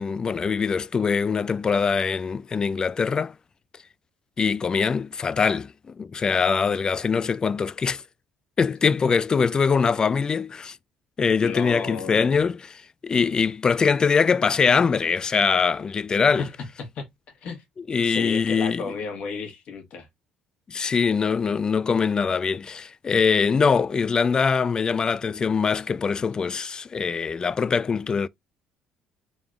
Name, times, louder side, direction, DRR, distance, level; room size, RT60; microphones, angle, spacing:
voice 1, 0.0-3.3 4.4-8.0 8.6-10.8 11.2-16.4 17.9-18.9 20.7-28.3, left 5 dB, 35° left, 0.3 m, -23 dB
voice 2, 11.4-12.4 16.4-16.5 16.8-17.1 17.4-17.6 18.0-20.1, left 5 dB, 60° left, 1.4 m, -33 dB
3.7 x 3.5 x 2.4 m
hypercardioid pair, 65°, 2 cm